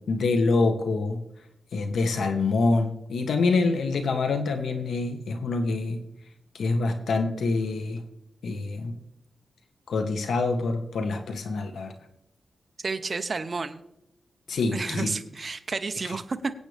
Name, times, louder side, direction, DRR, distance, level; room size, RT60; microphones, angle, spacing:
voice 1, 0.1-1.2 1.7-6.0 6.5-8.0 8.4-8.9 9.9-11.9 14.5-15.1, left 3 dB, 85° left, 6 dB, 1.4 m, -26 dB
voice 2, 12.8-13.8 14.7-16.5, right 4 dB, 40° right, 8 dB, 0.8 m, -31 dB
23.5 x 8.4 x 3.5 m, 0.81 s
wide cardioid pair, 95°, 0 cm